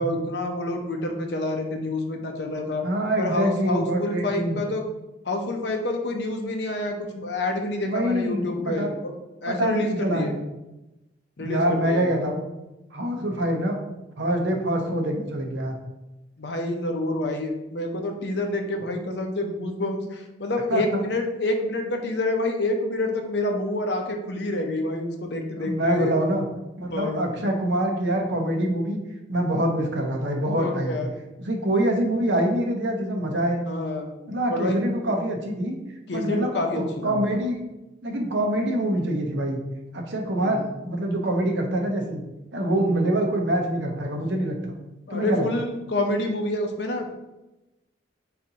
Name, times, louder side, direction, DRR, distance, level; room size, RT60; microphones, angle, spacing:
voice 1, 0.0-2.8 3.2-4.9 5.3-9.1 9.4-10.3 11.4-12.1 16.4-26.1 26.9-27.3 30.6-31.1 33.7-34.1 34.5-34.8 36.1-37.2 40.3-40.6 42.7-43.0 45.1-47.1, left 1 dB, 65° left, 3 dB, 0.6 m, -28 dB
voice 2, 2.8-4.6 7.8-8.9 9.5-10.4 11.4-12.4 12.9-13.8 14.2-15.8 20.7-21.0 25.6-26.4 26.8-29.0 29.3-31.0 31.4-33.6 34.3-35.8 36.1-37.6 38.0-39.6 39.9-42.2 42.5-44.7 45.1-45.4, right 1 dB, 70° right, 2 dB, 0.7 m, -25 dB
4.1 x 3.9 x 2.8 m, 0.98 s
head